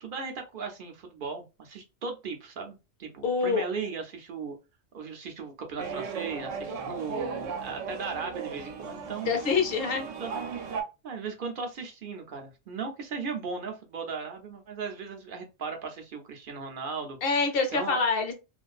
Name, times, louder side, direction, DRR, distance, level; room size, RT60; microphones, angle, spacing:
voice 1, 0.0-4.6 4.9-9.3 10.2-10.3 11.0-17.4 17.7-18.0, right 5 dB, 55° right, 0.6 m, -37 dB
voice 2, 3.2-3.6 9.2-10.0 17.2-18.3, left 4 dB, 55° left, 0.8 m, -26 dB
sound 1, 5.8-10.8, right 5 dB, 80° right, 0.9 m, -36 dB
2.5 x 2.3 x 2.3 m
omnidirectional pair, 1.3 m